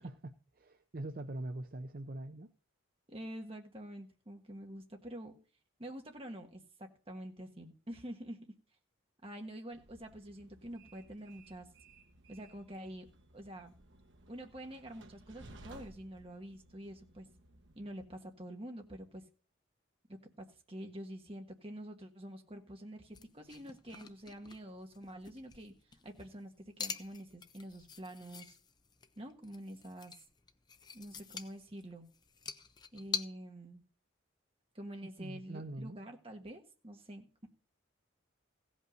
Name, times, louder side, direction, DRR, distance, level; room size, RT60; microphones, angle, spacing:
voice 1, 0.0-2.5 35.2-36.0, right 2 dB, 45° right, 7 dB, 0.6 m, -43 dB
voice 2, 3.1-5.4 5.8-8.5 9.2-11.7 12.3-13.1 13.3-13.7 14.3-17.3 17.7-19.2 20.1-25.7 26.0-28.6 29.2-30.1 30.9-32.1 32.9-33.8 34.7-37.5, right 1 dB, 25° right, 3 dB, 1.5 m, -47 dB
Train, 9.7-18.1, right 2 dB, 65° right, 1.2 m, -58 dB
sound 1, 23.1-33.2, left 5 dB, 20° left, 0.5 m, -45 dB
16.0 x 5.5 x 6.4 m, 0.39 s
head